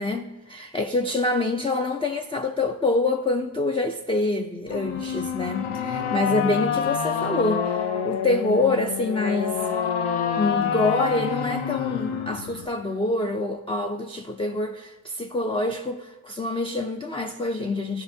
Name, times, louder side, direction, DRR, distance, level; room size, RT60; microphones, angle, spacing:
voice 1, 0.0-9.6 10.4-18.0, left 2 dB, 15° left, 0.4 m, -26 dB
sound 1, 4.7-12.7, left 7 dB, 90° left, 0.8 m, -27 dB
15.0 x 6.0 x 2.7 m
wide cardioid pair, 100°, 48 cm